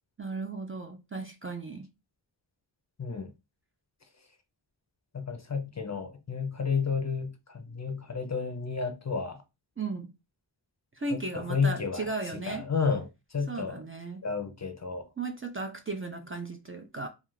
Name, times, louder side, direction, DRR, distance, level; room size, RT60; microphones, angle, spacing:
voice 1, 0.2-1.9 9.8-10.1 10.9-12.7 13.5-14.2 15.2-17.1, right 3 dB, 30° right, 0.3 m, -36 dB
voice 2, 3.0-3.3 5.1-9.4 11.1-13.8 14.2-15.1, left 5 dB, 35° left, 0.5 m, -31 dB
2.4 x 2.3 x 3.1 m
wide cardioid pair, 50°, 47 cm